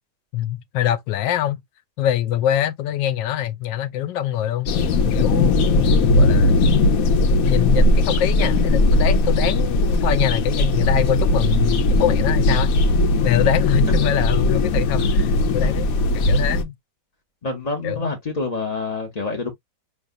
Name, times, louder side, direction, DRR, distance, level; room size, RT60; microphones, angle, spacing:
voice 1, 0.3-1.6 2.0-4.7 5.1-6.7 7.4-12.7 13.2-15.9 16.1-16.7 17.8-18.1, left 11 dB, 85° left, 1.3 m, -24 dB
sound 1, 4.7-16.6, left 2 dB, 60° left, 1.0 m, -18 dB
voice 2, 17.4-19.5, left 3 dB, 40° left, 0.5 m, -27 dB
4.9 x 3.2 x 2.4 m
omnidirectional pair, 1.9 m